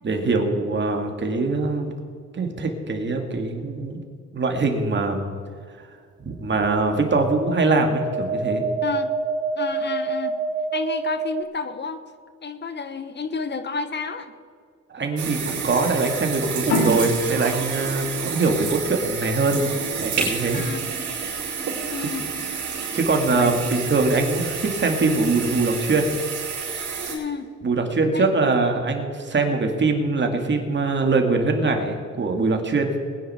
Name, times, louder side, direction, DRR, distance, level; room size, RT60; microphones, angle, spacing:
voice 1, 0.0-1.9 2.3-4.0 4.3-5.3 6.2-8.6 14.9-19.6 20.0-20.6 22.9-26.1 27.6-32.9, right 3 dB, 35° right, 4 dB, 2.3 m, -22 dB
sound 1, 6.6-11.4, right 4 dB, 15° right, 1.1 m, -27 dB
voice 2, 9.6-10.4 10.7-12.0 12.4-14.3 20.5-20.8 21.9-22.3 23.3-23.6 27.1-27.5 28.1-28.3, left 5 dB, 35° left, 10 dB, 1.3 m, -30 dB
sound 2, 15.2-27.1, right 6 dB, 75° right, 4.4 m, -29 dB
sound 3, 16.7-19.9, left 1 dB, 75° left, 3.8 m, -27 dB
21.0 x 10.0 x 4.5 m, 2.1 s
cardioid pair, 90°, 30 cm